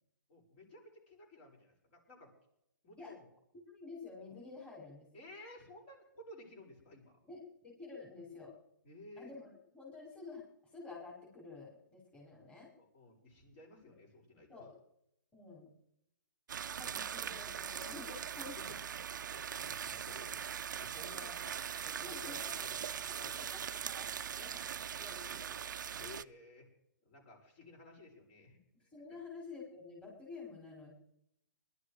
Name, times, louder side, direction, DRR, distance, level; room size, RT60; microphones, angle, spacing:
voice 1, 0.3-2.3 2.8-3.3 5.1-7.1 8.8-9.3 12.8-14.6 18.6-18.8 19.2-20.5 20.8-21.5 21.8-23.4 26.0-26.7 27.0-28.6, left 2 dB, 35° left, 0 dB, 6.7 m, -55 dB
voice 2, 3.5-5.1 7.2-8.5 9.2-10.4 10.7-12.7 13.9-14.0 14.5-14.7 15.3-15.7 16.8-18.6 21.1-21.3 22.0-23.2 23.5-24.1 24.4-24.7 25.0-25.6 28.7-30.9, left 4 dB, 10° left, -4 dB, 5.4 m, -50 dB
sound 1, 16.5-26.2, right 8 dB, 65° right, 0.6 m, -41 dB
20.5 x 12.0 x 5.0 m, 0.75 s
hypercardioid pair, 145°, 11 cm